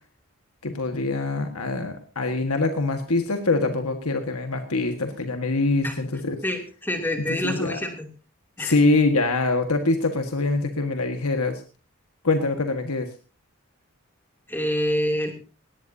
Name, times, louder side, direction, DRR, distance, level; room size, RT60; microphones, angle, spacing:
voice 1, 0.6-6.4 7.3-7.8 8.6-11.6 12.2-13.1, left 3 dB, 90° left, 5 dB, 1.7 m, -24 dB
voice 2, 6.4-8.1 8.6-8.8 14.5-15.3, equal, 10° left, 3 dB, 2.8 m, -26 dB
19.0 x 18.0 x 2.8 m, 0.34 s
head